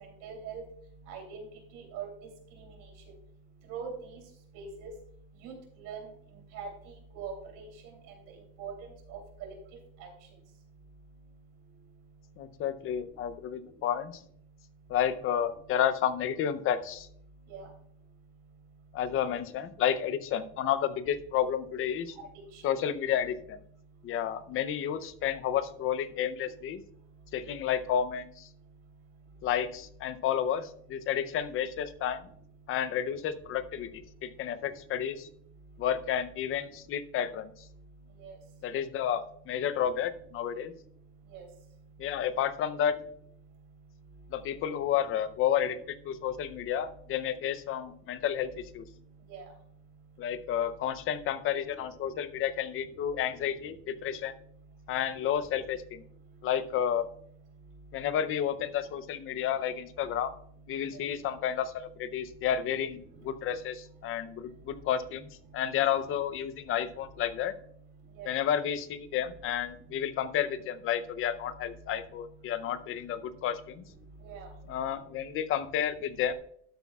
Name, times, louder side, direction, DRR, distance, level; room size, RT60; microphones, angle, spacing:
voice 1, 0.2-0.6 1.1-1.2 1.7-2.1 3.7-3.9 4.5-4.9 5.4-5.5 5.8-6.0 6.5-6.7 7.1-7.3 8.6-8.7 9.1-9.5 10.0-10.1 17.5-17.7 38.2-38.3 41.3-41.4 49.3-49.4 68.2-68.3 74.2-74.5, right 7 dB, 70° right, 2 dB, 3.1 m, -40 dB
voice 2, 12.4-14.2 14.9-17.1 18.9-22.2 22.6-23.6 24.0-26.8 27.3-28.5 29.4-32.2 32.7-35.3 35.8-37.5 38.6-40.7 42.0-43.0 44.3-48.9 50.2-54.3 54.9-56.0 56.4-57.1 57.9-60.3 60.7-67.5 68.2-73.8 74.7-76.3, left 9 dB, 40° left, 13 dB, 0.6 m, -31 dB
12.0 x 8.1 x 2.3 m, 0.65 s
cardioid pair, 165°, 33 cm